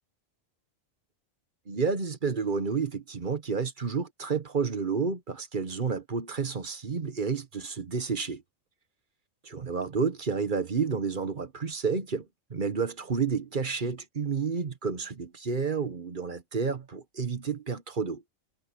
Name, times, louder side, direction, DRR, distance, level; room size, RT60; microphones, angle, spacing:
voice 1, 1.7-8.4 9.4-18.2, right 5 dB, 40° right, 1.3 m, -30 dB
omnidirectional pair, 1.3 m